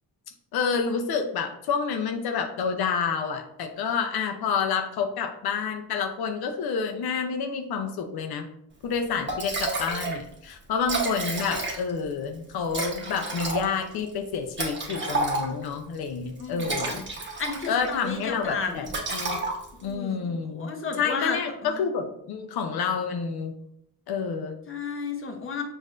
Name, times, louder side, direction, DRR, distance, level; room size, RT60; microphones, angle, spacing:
voice 1, 0.5-8.5 8.8-17.0 17.7-18.9 19.1-19.4 19.8-20.7 21.0-23.5 24.1-24.6, left 6 dB, 80° left, 4 dB, 0.6 m, -29 dB
Liquid, 8.9-9.0 9.3-10.2 10.5-10.6 10.8-12.0 12.7-15.7 16.4-17.9 18.2-18.5 18.8-19.9, right 2 dB, 30° right, 1.0 m, -30 dB
voice 2, 16.4-17.0 17.4-18.9 19.8-21.4 21.6-21.8 24.7-25.6, left 5 dB, 35° left, 4 dB, 0.7 m, -33 dB
5.4 x 2.6 x 2.4 m, 0.73 s
cardioid pair, 85°, 37 cm